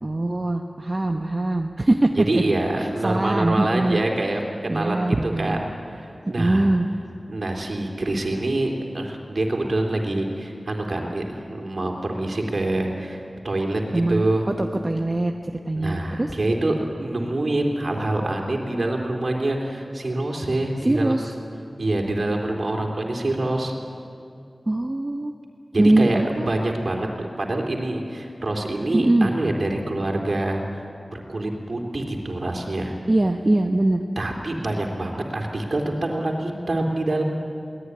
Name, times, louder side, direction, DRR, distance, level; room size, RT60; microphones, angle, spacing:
voice 1, 0.0-2.4 2.8-4.0 4.7-5.6 6.4-6.9 13.9-15.3 15.6-16.3 20.8-21.3 24.7-25.3 25.8-26.5 28.9-29.3 33.1-34.0, right 2 dB, 35° right, 3 dB, 1.0 m, -22 dB
voice 2, 2.2-6.7 7.3-14.5 15.7-21.3 21.8-23.7 25.7-30.8 31.1-32.9 34.2-37.2, right 2 dB, 60° right, 2 dB, 3.5 m, -26 dB
22.5 x 18.0 x 9.7 m, 2.5 s
wide cardioid pair, 70°, 0 cm